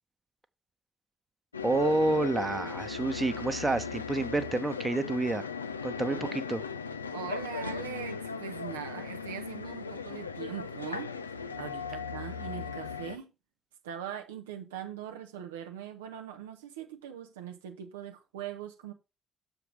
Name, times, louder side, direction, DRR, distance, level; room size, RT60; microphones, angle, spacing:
sound 1, 1.5-13.2, left 5 dB, 90° left, 0.3 m, -37 dB
voice 1, 1.6-5.5 5.8-6.6, right 2 dB, 20° right, 0.8 m, -29 dB
voice 2, 6.1-6.6 7.1-11.1 11.6-13.3 13.8-18.9, right 10 dB, 80° right, 0.6 m, -41 dB
6.9 x 3.4 x 6.1 m
figure-of-eight pair, 40°, 0 cm